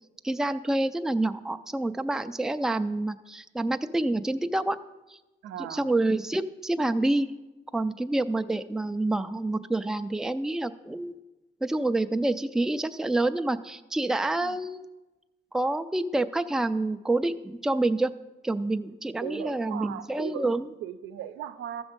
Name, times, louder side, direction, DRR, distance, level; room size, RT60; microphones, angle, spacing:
voice 1, 0.2-4.8 5.1-5.2 5.7-7.3 7.7-11.1 11.6-14.8 15.5-18.1 18.4-20.7, right 2 dB, 5° right, 9 dB, 0.4 m, -27 dB
voice 2, 5.4-5.9 14.4-14.6 19.2-20.5 20.8-21.8, right 10 dB, 90° right, 10 dB, 0.6 m, -37 dB
14.0 x 6.2 x 5.1 m, 1.1 s
cardioid pair, 90°, 20 cm